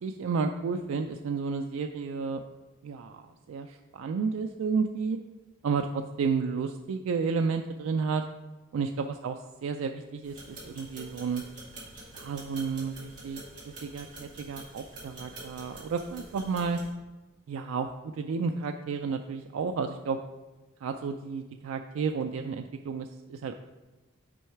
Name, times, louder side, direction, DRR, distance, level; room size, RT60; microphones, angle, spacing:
voice 1, 0.0-2.4 2.8-5.2 5.6-8.3 8.7-9.4 9.6-11.4 12.1-13.4 13.8-16.8 17.5-20.2 20.8-23.5, right 5 dB, 75° right, 5 dB, 0.3 m, -31 dB
sound 1, 10.2-16.9, right 2 dB, 35° right, 2.2 m, -46 dB
6.1 x 4.6 x 4.5 m, 1.2 s
head